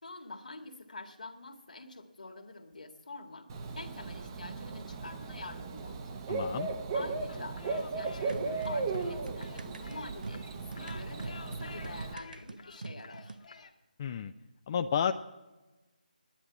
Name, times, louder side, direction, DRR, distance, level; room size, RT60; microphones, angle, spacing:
voice 1, 0.0-3.5 3.8-6.1 6.9-13.4, left 3 dB, 65° left, 3 dB, 1.8 m, -46 dB
Bird / Cricket, 3.5-12.1, right 4 dB, 25° right, 0.8 m, -37 dB
voice 2, 6.3-6.7 14.0-14.3 14.7-15.1, left 7 dB, 25° left, 7 dB, 0.3 m, -31 dB
sound 1, 7.3-13.7, left 5 dB, 50° left, 1.2 m, -51 dB
sound 2, 8.3-13.4, right 3 dB, 70° right, 0.5 m, -43 dB
10.0 x 10.0 x 7.2 m, 1.1 s
figure-of-eight pair, 155°, 5 cm